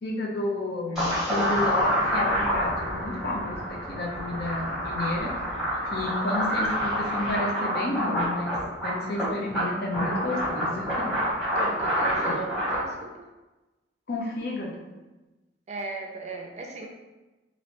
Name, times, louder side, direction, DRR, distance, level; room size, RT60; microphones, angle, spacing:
voice 1, 0.0-5.3 5.9-11.2 12.2-12.4 14.1-14.9, left 2 dB, 60° left, -1 dB, 0.6 m, -31 dB
sound 1, 1.0-12.8, equal, ahead, 1.1 m, -27 dB
voice 2, 11.5-13.3 15.7-16.9, right 4 dB, 40° right, 1 dB, 0.4 m, -37 dB
3.1 x 2.6 x 2.9 m, 1.1 s
head